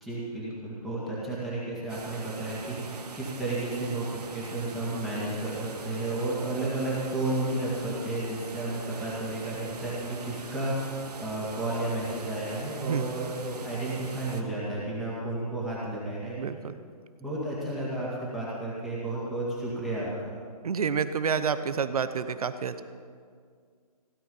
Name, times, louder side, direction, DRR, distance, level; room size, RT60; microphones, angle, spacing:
voice 1, 0.0-16.4 17.2-20.3, right 2 dB, ahead, -9 dB, 2.0 m, -32 dB
sound 1, 1.9-14.4, right 4 dB, 85° right, 1.7 m, -42 dB
voice 2, 16.4-16.8 20.6-22.8, right 6 dB, 65° right, 12 dB, 0.9 m, -29 dB
16.5 x 11.5 x 5.5 m, 2.1 s
hypercardioid pair, 165°, 20 cm